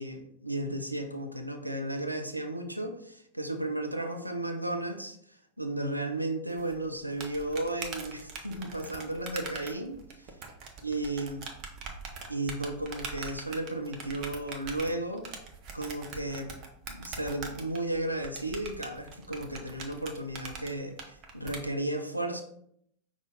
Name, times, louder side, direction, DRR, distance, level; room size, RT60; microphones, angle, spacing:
voice 1, 0.0-5.2 5.6-10.0 10.8-11.4 12.3-15.3 15.7-16.5 16.9-22.4, right 1 dB, 85° right, 4 dB, 0.5 m, -34 dB
sound 1, 6.6-21.6, right 4 dB, 40° right, 0.8 m, -42 dB
5.5 x 2.4 x 3.8 m, 0.69 s
figure-of-eight pair, 90°, 0 cm